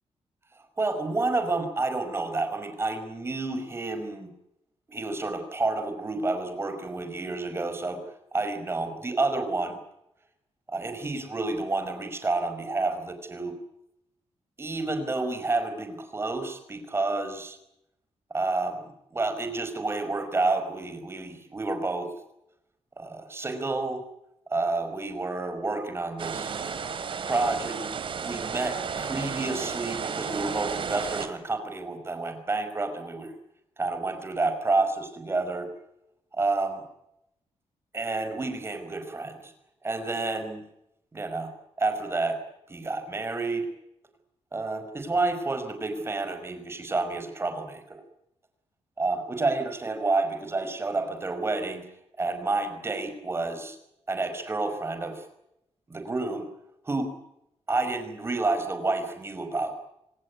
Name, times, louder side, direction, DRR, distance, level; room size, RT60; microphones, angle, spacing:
voice 1, 0.8-4.3 4.9-8.0 8.3-9.8 10.7-13.6 14.6-17.6 18.3-22.1 23.0-24.1 24.5-26.6 27.3-27.8 28.2-33.3 33.8-35.7 36.3-36.8 37.9-39.5 39.8-40.6 41.1-41.5 41.8-42.4 42.7-43.7 44.5-48.0 49.0-51.9 52.2-53.8 54.1-55.3 55.9-56.5 56.8-57.1 57.7-59.7, right 3 dB, 20° right, 8 dB, 5.2 m, -29 dB
sound 1, 26.2-31.3, right 6 dB, 50° right, 3.0 m, -33 dB
26.5 x 19.0 x 9.5 m, 0.81 s
wide cardioid pair, 170°, 11 cm